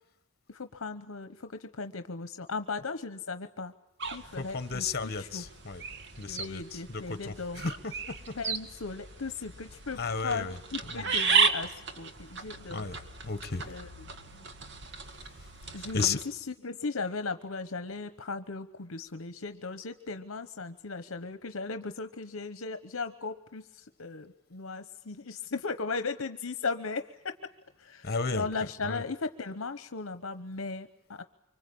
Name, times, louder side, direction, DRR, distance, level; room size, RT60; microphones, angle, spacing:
voice 1, 0.5-3.7 4.1-5.4 6.3-7.6 8.3-12.9 13.7-14.5 15.7-27.3 27.8-31.2, left 4 dB, 70° left, 1.0 m, -37 dB
sound 1, 4.0-16.2, right 5 dB, 60° right, 1.8 m, -34 dB
voice 2, 4.4-5.8 6.2-8.3 10.0-11.1 12.7-13.0 13.2-13.6 15.9-16.2 28.0-28.5 28.8-29.0, left 4 dB, 50° left, 1.5 m, -34 dB
25.0 x 25.0 x 8.6 m
head